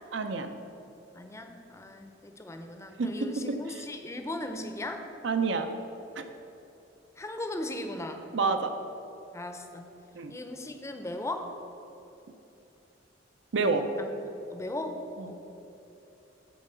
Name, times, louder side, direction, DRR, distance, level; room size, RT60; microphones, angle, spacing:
voice 1, 0.1-0.5 3.0-3.6 5.2-5.7 6.2-6.3 8.3-8.7 10.1-10.3 13.5-13.8 15.2-15.3, right 4 dB, 75° right, 7 dB, 0.6 m, -28 dB
voice 2, 1.1-5.0 7.2-8.3 9.3-9.9 10.3-11.5 14.0-14.1 14.5-15.4, left 1 dB, 15° left, 6 dB, 0.5 m, -37 dB
7.1 x 4.6 x 6.8 m, 3.0 s
head